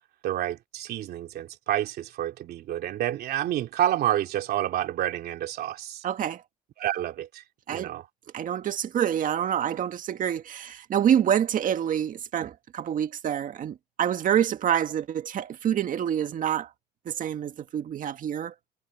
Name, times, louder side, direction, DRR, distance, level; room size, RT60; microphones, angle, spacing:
voice 1, 0.2-6.0 6.8-7.4 7.7-8.1, right 12 dB, 70° right, 2.9 m, -29 dB
voice 2, 6.0-6.4 7.7-7.9 8.3-16.7 17.1-18.5, right 9 dB, 55° right, 1.9 m, -27 dB
cardioid pair, 110°, 17 cm